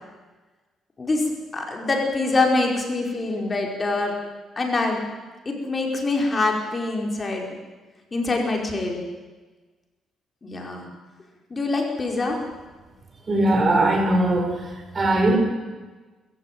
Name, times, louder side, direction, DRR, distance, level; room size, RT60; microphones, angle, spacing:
voice 1, 1.0-4.1 4.6-5.0 5.4-7.5 8.1-9.0 10.4-10.9 11.5-12.4, left 3 dB, 30° left, 1 dB, 5.0 m, -24 dB
voice 2, 13.3-14.7 14.9-15.4, right 1 dB, 35° right, 4 dB, 5.3 m, -20 dB
21.5 x 15.0 x 9.3 m, 1.3 s
cardioid pair, 90°, 0 cm